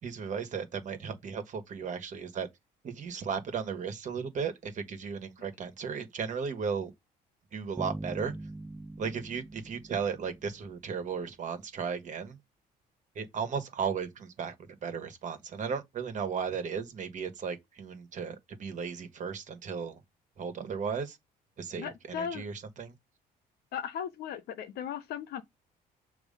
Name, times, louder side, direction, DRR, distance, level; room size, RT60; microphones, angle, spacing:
voice 1, 0.0-2.5 2.8-6.9 7.5-8.3 9.0-12.4 13.1-14.5 14.8-20.0 20.4-21.2 21.6-22.9, right 6 dB, 45° right, 1.6 m, -35 dB
sound 1, 7.8-11.2, right 2 dB, 5° right, 0.5 m, -43 dB
voice 2, 21.8-22.4 23.7-25.4, left 8 dB, 70° left, 1.2 m, -37 dB
7.1 x 3.1 x 5.3 m
cardioid pair, 110°, 17 cm